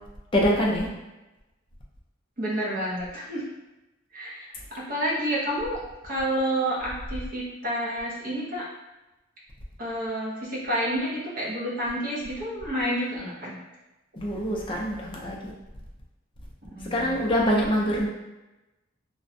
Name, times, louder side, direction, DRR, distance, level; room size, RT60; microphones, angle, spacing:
voice 1, 0.3-0.9 14.2-15.5 16.9-18.1, equal, 25° left, -3 dB, 0.4 m, -24 dB
voice 2, 2.4-3.5 4.1-8.7 9.8-13.6 16.8-17.1, equal, 45° right, -5 dB, 0.7 m, -29 dB
2.4 x 2.1 x 2.5 m, 1.0 s
head